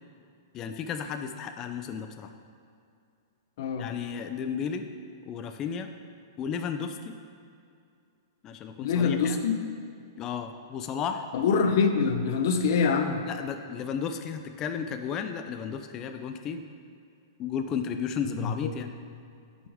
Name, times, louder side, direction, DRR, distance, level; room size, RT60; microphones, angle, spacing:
voice 1, 0.5-2.3 3.8-4.9 5.3-5.9 6.4-7.1 8.4-9.5 10.2-11.2 13.3-16.6 17.4-18.9, left 7 dB, 20° left, 6 dB, 0.3 m, -33 dB
voice 2, 3.6-3.9 8.8-9.6 11.3-13.2 18.4-18.7, left 5 dB, 50° left, 6 dB, 0.7 m, -25 dB
10.5 x 6.1 x 3.5 m, 2.4 s
hypercardioid pair, 165°, 2 cm